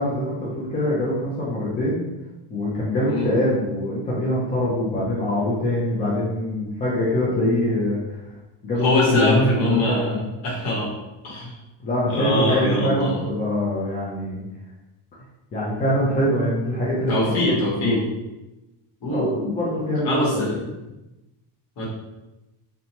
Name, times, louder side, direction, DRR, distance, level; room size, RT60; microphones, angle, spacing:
voice 1, 0.0-2.0 2.5-8.0 8.6-10.2 11.8-14.4 15.5-17.5 17.8-18.0 19.1-20.4, left 1 dB, 20° left, -7 dB, 0.3 m, -23 dB
voice 2, 8.8-10.2 10.4-10.9 11.2-11.6 12.1-13.2 17.1-18.0 19.0-19.3 20.0-20.6 21.8-21.9, left 2 dB, 50° left, -4 dB, 1.0 m, -23 dB
2.7 x 2.2 x 2.8 m, 1.0 s
cardioid pair, 145°, 49 cm